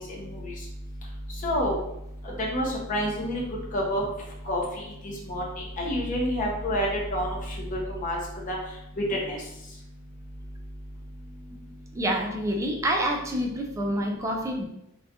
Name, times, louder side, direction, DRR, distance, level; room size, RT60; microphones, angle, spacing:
voice 1, 1.4-1.8 2.5-3.4 3.7-4.0 4.5-4.6 5.3-5.4 5.8-6.9 7.1-7.3 7.7-8.2 8.5-8.6 9.1-9.4, equal, 35° left, -3 dB, 0.6 m, -27 dB
voice 2, 11.9-14.7, equal, 15° right, 1 dB, 0.3 m, -27 dB
2.4 x 2.2 x 2.7 m, 0.82 s
head